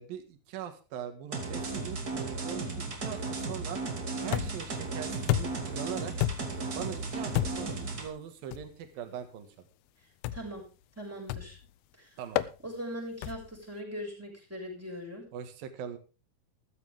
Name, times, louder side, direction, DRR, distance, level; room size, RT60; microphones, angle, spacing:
voice 1, 0.0-3.8 4.2-6.1 6.8-9.5 12.2-12.4 15.3-16.0, right 9 dB, 70° right, 7 dB, 3.4 m, -41 dB
sound 1, 1.3-8.1, right 3 dB, 30° right, 2.0 m, -35 dB
sound 2, 4.3-4.7 5.3-5.7 6.2-6.6 7.3-7.8 8.5-8.7 10.2-10.6 11.3-11.6 12.4-12.6 13.2-13.6, left 14 dB, 80° left, 2.6 m, -31 dB
voice 2, 10.3-10.7 11.0-11.6 12.0-12.1 12.6-15.2, equal, 5° right, -1 dB, 6.0 m, -40 dB
14.5 x 13.5 x 3.5 m, 0.32 s
omnidirectional pair, 4.4 m